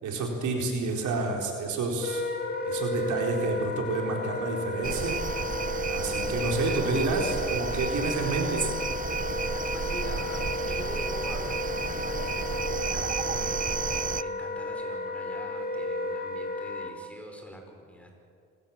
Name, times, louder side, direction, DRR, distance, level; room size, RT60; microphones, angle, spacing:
voice 1, 0.0-2.2 2.6-5.2 5.9-8.6, right 3 dB, 75° right, 1 dB, 4.2 m, -29 dB
Wind instrument woodwind instrument, 1.9-16.9, left 2 dB, 30° left, 2.6 m, -33 dB
sound 1, 4.8-14.2, right 7 dB, 30° right, 0.5 m, -32 dB
voice 2, 9.7-18.1, equal, 5° left, 3 dB, 5.0 m, -45 dB
26.5 x 17.0 x 7.4 m, 2.3 s
cardioid pair, 90°, 30 cm